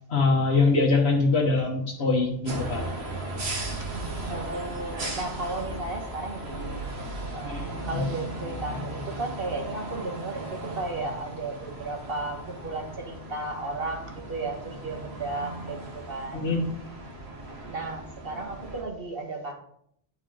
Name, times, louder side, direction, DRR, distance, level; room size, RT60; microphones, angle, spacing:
voice 1, 0.1-2.8 7.5-7.9 16.3-16.7, left 3 dB, 85° left, -2 dB, 1.5 m, -23 dB
sound 1, 2.5-18.8, right 2 dB, 90° right, 1.7 m, -36 dB
voice 2, 3.8-6.8 7.3-16.5 17.7-19.5, right 2 dB, 65° right, 2 dB, 1.8 m, -34 dB
9.5 x 4.7 x 5.0 m, 0.68 s
omnidirectional pair, 1.0 m